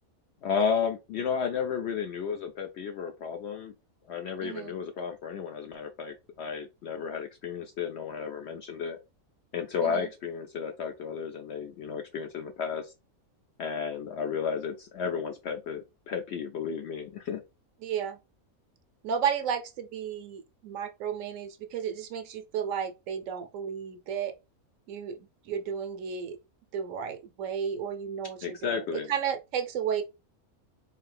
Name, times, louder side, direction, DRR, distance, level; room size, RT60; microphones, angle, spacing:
voice 1, 0.4-3.7 4.1-9.0 9.5-12.9 13.6-17.4 28.4-29.1, left 6 dB, 65° left, 0.7 m, -33 dB
voice 2, 4.4-4.7 9.8-10.1 17.8-18.2 19.0-24.4 24.9-25.2 25.4-26.4 26.7-30.0, right 7 dB, 70° right, 0.9 m, -33 dB
3.8 x 2.7 x 3.2 m
omnidirectional pair, 1.5 m